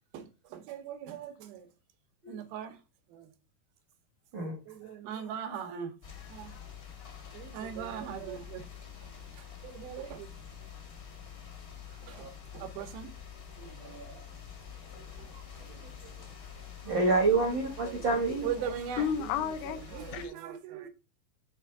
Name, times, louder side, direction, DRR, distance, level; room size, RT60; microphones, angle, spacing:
voice 1, 0.1-1.7 2.3-2.8 3.1-3.3 4.7-5.9 6.3-6.5 7.3-8.7 9.6-10.3 12.0-12.3 12.5-13.1 13.6-13.8 15.6-16.1 17.8-19.1 19.9-20.9, right 8 dB, 90° right, 2.8 m, -40 dB
voice 2, 4.3-4.9 12.1-12.3 13.8-14.2 15.3-15.4 16.8-18.5, right 3 dB, 60° right, 1.2 m, -29 dB
sound 1, 6.0-20.3, left 7 dB, 55° left, 0.9 m, -47 dB
voice 3, 6.1-6.7 7.0-7.4 19.0-19.8 20.1-20.3, left 8 dB, 85° left, 1.8 m, -34 dB
6.3 x 3.5 x 4.6 m
omnidirectional pair, 4.1 m